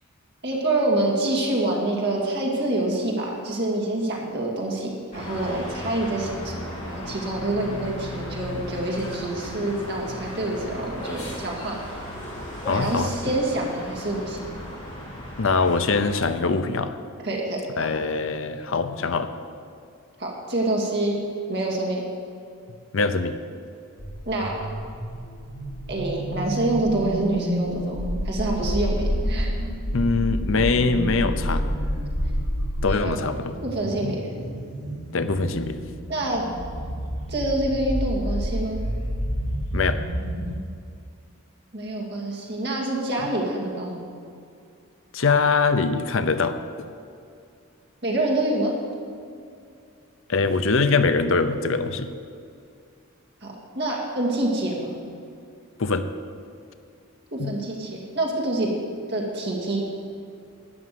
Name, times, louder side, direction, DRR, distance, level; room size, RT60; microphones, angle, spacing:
voice 1, 0.4-12.1 12.7-14.6 17.2-17.6 20.2-21.2 21.5-22.0 24.3-24.7 25.9-29.5 32.8-33.2 33.6-34.2 36.1-36.4 37.3-38.8 41.7-44.2 48.0-48.7 53.4-55.0 57.3-58.7 59.1-59.8, right 2 dB, 50° right, -2 dB, 2.4 m, -26 dB
sound 1, 5.1-16.2, left 1 dB, 35° left, 3.5 m, -36 dB
voice 2, 12.7-13.1 15.4-17.0 17.8-19.3 22.9-23.3 29.9-31.6 32.8-33.5 34.0-34.1 35.1-35.8 39.7-40.0 45.1-46.5 50.3-52.1 55.8-56.1 57.4-57.6, left 4 dB, 65° left, 10 dB, 0.6 m, -23 dB
sound 2, 24.0-40.6, equal, 80° left, 1.7 m, -29 dB
12.0 x 6.2 x 9.4 m, 2.4 s
head